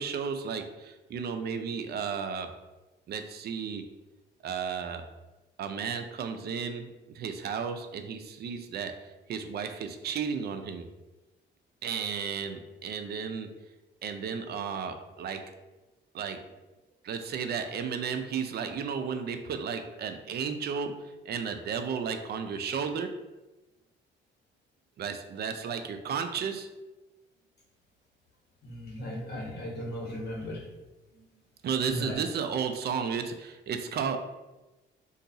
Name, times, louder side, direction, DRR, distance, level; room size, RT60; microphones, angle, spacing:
voice 1, 0.0-2.5 3.1-3.9 4.4-5.1 5.6-10.9 11.8-13.5 14.0-15.4 16.1-16.4 17.0-23.2 25.0-26.7 31.6-34.2, right 6 dB, 55° right, 7 dB, 0.4 m, -33 dB
voice 2, 28.6-30.6 31.9-32.2, equal, 55° left, -3 dB, 1.2 m, -36 dB
2.6 x 2.3 x 3.9 m, 1.1 s
cardioid pair, 90°, 20 cm